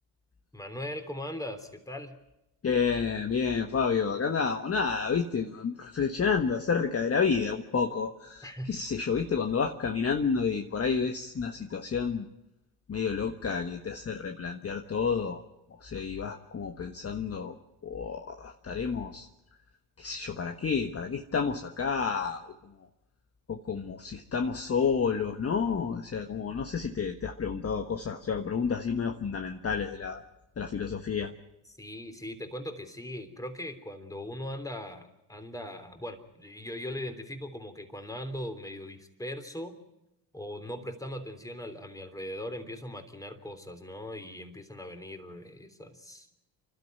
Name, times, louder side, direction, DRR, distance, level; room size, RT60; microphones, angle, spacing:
voice 1, 0.5-2.2 8.4-8.7 31.8-39.7 40.3-46.3, left 1 dB, 5° left, 7 dB, 3.3 m, -39 dB
voice 2, 2.6-12.3 12.9-15.4 15.8-17.5 17.8-19.3 20.0-22.5 23.5-30.2 30.6-31.3, left 6 dB, 30° left, 6 dB, 1.4 m, -30 dB
28.5 x 12.5 x 9.4 m, 0.94 s
hypercardioid pair, 65°, 48 cm